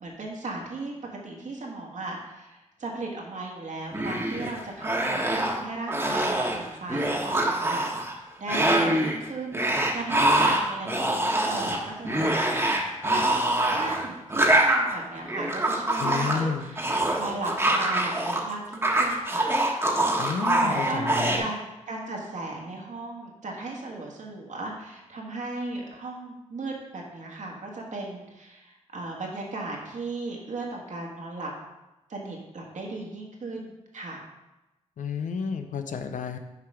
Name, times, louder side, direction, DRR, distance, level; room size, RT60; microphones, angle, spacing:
voice 1, 0.0-0.9 1.2-7.8 8.1-12.8 13.0-19.5 20.7-31.5 32.1-34.2, right 2 dB, 70° right, -1 dB, 1.6 m, -36 dB
sound 1, 3.9-4.5 4.8-5.6 5.9-6.6 6.9-8.1 8.5-9.2 9.5-18.4 18.7-21.4, right 1 dB, 20° right, 1.3 m, -24 dB
voice 2, 16.0-16.7 20.2-21.5 35.0-36.4, left 6 dB, 90° left, 7 dB, 0.6 m, -31 dB
6.6 x 4.9 x 4.9 m, 1.0 s
cardioid pair, 75°, 13 cm